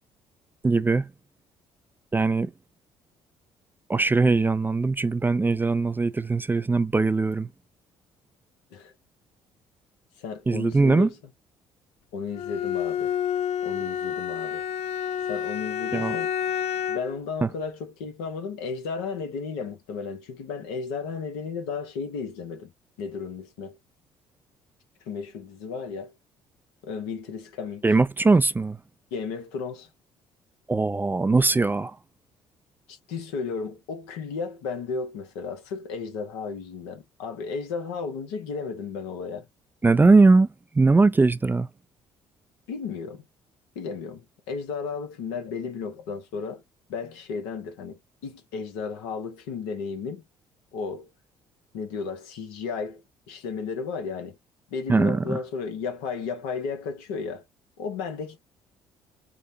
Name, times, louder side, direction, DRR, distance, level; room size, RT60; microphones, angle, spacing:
voice 1, 0.6-1.1 2.1-2.5 3.9-7.5 10.5-11.1 15.9-16.2 17.4-17.5 27.8-28.8 30.7-32.0 39.8-40.5 40.7-41.7 54.9-55.4, right 3 dB, 15° right, 0.3 m, -20 dB
voice 2, 10.2-11.2 12.1-13.1 13.6-14.6 15.2-16.3 16.9-22.7 23.0-23.8 25.1-26.1 26.8-27.8 29.1-29.9 32.9-39.5 42.7-43.2 43.7-46.6 46.9-50.2 50.7-51.1 51.7-54.4 54.7-57.4 57.8-58.4, left 5 dB, 75° left, 1.0 m, -34 dB
Bowed string instrument, 12.3-17.2, left 9 dB, 60° left, 0.4 m, -29 dB
4.9 x 2.2 x 2.7 m
hypercardioid pair, 50°, 12 cm